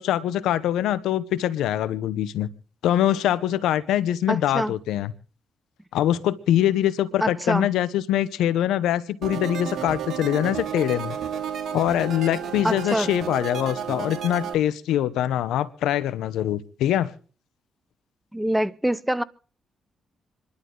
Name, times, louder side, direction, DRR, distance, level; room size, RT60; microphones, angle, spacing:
voice 1, 0.0-2.5 2.8-5.1 5.9-11.2 11.7-17.1, left 11 dB, 85° left, 0.8 m, -23 dB
voice 2, 4.3-4.7 7.2-7.7 12.6-13.1 18.3-19.2, right 1 dB, 5° right, 0.8 m, -25 dB
sound 1, 9.2-14.5, right 8 dB, 70° right, 2.5 m, -32 dB
27.0 x 11.5 x 3.9 m
supercardioid pair, 65°, 0 cm